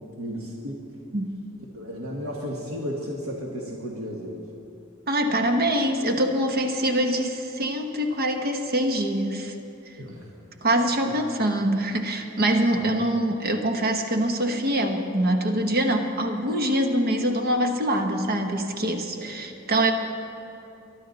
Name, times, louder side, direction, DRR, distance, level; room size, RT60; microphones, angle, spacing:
voice 1, 0.2-0.8 1.7-4.4 5.3-5.5 10.0-10.3 11.0-11.1 12.7-12.9 19.2-19.3, equal, 85° right, -2 dB, 1.5 m, -34 dB
voice 2, 5.1-9.5 10.6-19.9, right 1 dB, 50° right, 4 dB, 1.0 m, -24 dB
23.0 x 11.5 x 4.0 m, 2.8 s
head